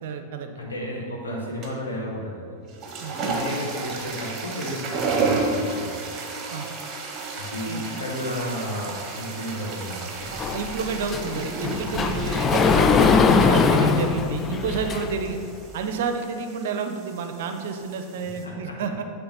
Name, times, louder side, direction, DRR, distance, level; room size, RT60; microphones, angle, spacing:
voice 1, 0.0-0.6 3.0-3.2 6.5-6.7 7.6-7.8 10.3-15.4 15.7-19.0, right 5 dB, 55° right, 6 dB, 0.6 m, -30 dB
voice 2, 0.6-2.6 3.2-6.0 7.3-10.3 18.4-18.7, equal, 70° left, -3 dB, 1.6 m, -32 dB
sound 1, 1.6-2.0 2.6-18.4, right 3 dB, 30° right, 1.1 m, -33 dB
Sliding door, 10.4-15.4, left 5 dB, 20° left, 0.4 m, -21 dB
8.8 x 3.4 x 5.5 m, 2.4 s
figure-of-eight pair, 90°, 0 cm